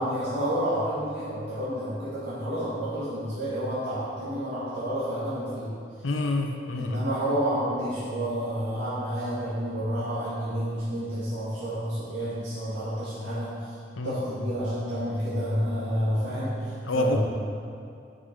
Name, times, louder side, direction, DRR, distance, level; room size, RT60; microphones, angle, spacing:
voice 1, 0.0-5.7 6.7-13.5 14.0-17.2, equal, 75° right, -11 dB, 1.7 m, -29 dB
voice 2, 6.0-7.0 14.0-14.2 16.8-17.2, left 2 dB, 90° left, 3 dB, 0.7 m, -27 dB
6.8 x 5.6 x 5.1 m, 2.5 s
head